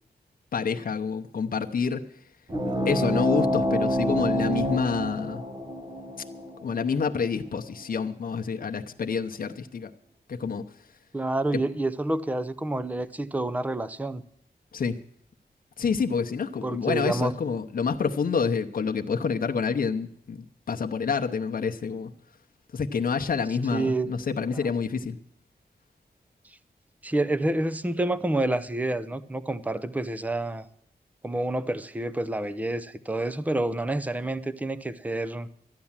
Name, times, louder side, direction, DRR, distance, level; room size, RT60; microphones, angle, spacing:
voice 1, 0.5-2.0 2.6-5.4 6.6-9.9 10.3-10.6 11.5-11.6 14.7-14.9 15.8-22.1 22.7-25.2, left 5 dB, 60° left, 0.8 m, -28 dB
sound 1, 2.5-7.6, equal, 25° right, 0.9 m, -28 dB
voice 2, 11.1-14.2 16.6-17.3 23.7-24.1 27.0-30.7 31.2-35.5, right 2 dB, 10° right, 0.6 m, -28 dB
13.5 x 9.7 x 7.3 m
wide cardioid pair, 165°, 17 cm